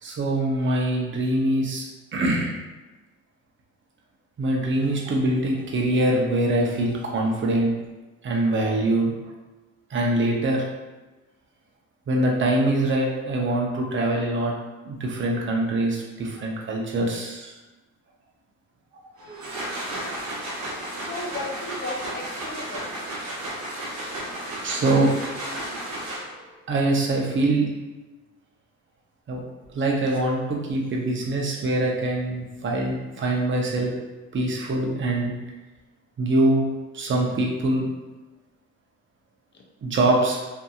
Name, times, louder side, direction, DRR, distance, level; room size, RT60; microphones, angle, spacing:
voice 1, 0.0-1.9 2.1-2.5 4.4-7.7 8.2-9.2 9.9-10.6 12.1-14.5 14.8-17.5 24.6-25.1 26.7-27.7 29.3-29.4 29.7-33.9 34.3-35.3 36.2-36.7 36.9-37.8 39.8-40.4, right 2 dB, 40° right, -1 dB, 0.7 m, -23 dB
sound 1, 19.2-26.5, right 1 dB, 75° right, 0.9 m, -33 dB
voice 2, 20.9-22.9 39.5-39.6, left 2 dB, 40° left, 0 dB, 0.6 m, -35 dB
2.7 x 2.6 x 2.3 m, 1.1 s
cardioid pair, 90°, 30 cm